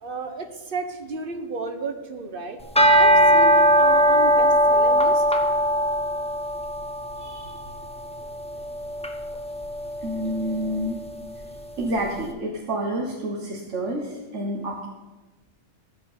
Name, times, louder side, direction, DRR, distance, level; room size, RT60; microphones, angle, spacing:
voice 1, 0.0-2.6 3.0-5.2, right 3 dB, 40° right, 7 dB, 1.2 m, -33 dB
sound 1, 2.6-11.9, equal, 5° left, 0.9 m, -21 dB
voice 2, 7.2-7.5 10.0-11.0 11.8-14.9, right 1 dB, 60° right, 0 dB, 1.6 m, -29 dB
15.0 x 5.4 x 8.3 m, 1.2 s
omnidirectional pair, 1.5 m